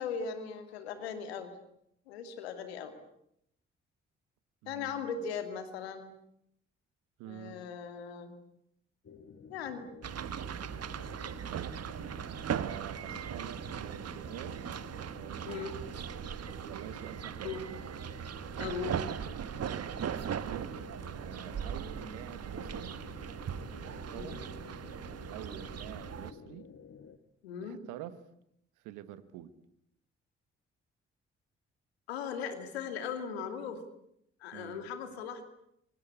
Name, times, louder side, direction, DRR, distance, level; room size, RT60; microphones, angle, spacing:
voice 1, 0.0-1.5 2.1-2.9 4.7-6.1 7.2-8.3 9.5-9.9 15.4-15.8 17.4-17.7 18.6-19.0 24.1-24.4 27.4-27.8 32.1-33.8 34.4-35.4, left 6 dB, 85° left, 8 dB, 2.5 m, -38 dB
voice 2, 4.6-5.1 7.2-7.6 11.5-11.7 12.5-14.7 15.1-15.7 16.6-17.6 20.4-20.9 21.1-22.9 23.9-24.4 25.3-26.7 27.6-28.2 28.8-29.5 34.5-34.9, right 13 dB, 75° right, 14 dB, 1.7 m, -46 dB
sound 1, 9.0-27.2, left 6 dB, 45° left, 2.3 m, -52 dB
sound 2, 10.0-26.3, right 8 dB, 55° right, 1.6 m, -39 dB
27.0 x 24.5 x 8.3 m, 0.77 s
hypercardioid pair, 40°, 30 cm